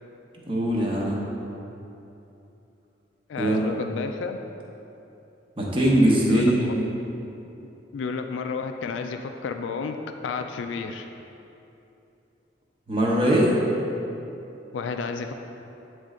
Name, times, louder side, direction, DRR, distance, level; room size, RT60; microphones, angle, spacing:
voice 1, 0.5-1.2 3.4-3.7 5.6-6.8 12.9-13.5, right 1 dB, 30° right, -4 dB, 0.9 m, -21 dB
voice 2, 3.3-4.4 6.3-6.7 7.9-11.1 14.7-15.3, left 5 dB, 80° left, 7 dB, 0.3 m, -31 dB
8.8 x 3.2 x 3.7 m, 2.9 s
head